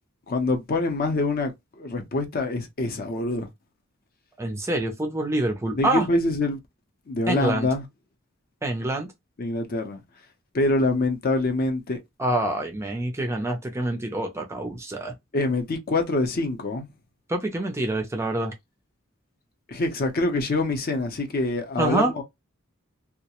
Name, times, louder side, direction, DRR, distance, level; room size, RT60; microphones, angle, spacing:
voice 1, 0.3-3.5 5.7-6.6 7.1-7.8 9.4-10.0 10.5-12.0 15.3-16.9 19.7-22.2, left 2 dB, 45° left, 0.6 m, -25 dB
voice 2, 4.4-6.1 7.3-7.7 8.6-9.1 12.2-15.1 17.3-18.5 21.8-22.1, right 1 dB, 15° right, 0.4 m, -26 dB
2.3 x 2.0 x 2.8 m
head